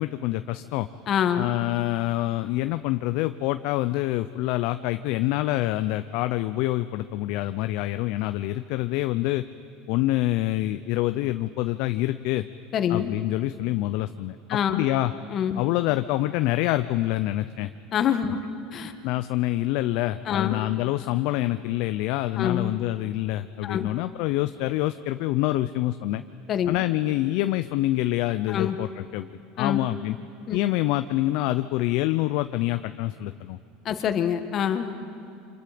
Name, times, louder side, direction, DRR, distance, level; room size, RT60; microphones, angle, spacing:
voice 1, 0.0-0.9 1.4-9.4 9.9-12.5 12.9-15.1 15.6-17.7 19.0-26.2 26.7-30.2 30.5-33.6, left 16 dB, 65° left, 10 dB, 0.5 m, -26 dB
voice 2, 1.1-1.5 12.7-13.1 14.5-14.8 15.3-15.6 17.9-18.4 18.7-18.9 20.3-20.6 22.4-22.7 23.6-23.9 26.5-26.8 28.5-28.8 29.6-29.9 30.5-30.6 33.8-34.9, left 9 dB, 40° left, 8 dB, 1.5 m, -25 dB
28.5 x 25.5 x 5.1 m, 2.4 s
supercardioid pair, 120°, 0 cm